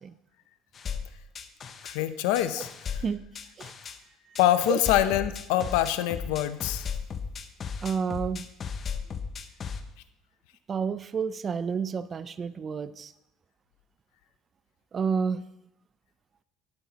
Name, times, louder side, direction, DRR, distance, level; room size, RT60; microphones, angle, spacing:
sound 1, 0.7-2.0 2.4-4.0 4.4-9.8, left 6 dB, 30° left, 0.7 m, -35 dB
voice 1, 1.8-2.7 4.4-6.9, left 13 dB, 90° left, 11 dB, 0.5 m, -25 dB
voice 2, 7.8-8.5 10.7-13.1 14.9-15.5, right 6 dB, 25° right, 15 dB, 0.4 m, -30 dB
11.5 x 10.0 x 2.8 m, 0.87 s
cardioid pair, 155°, 0 cm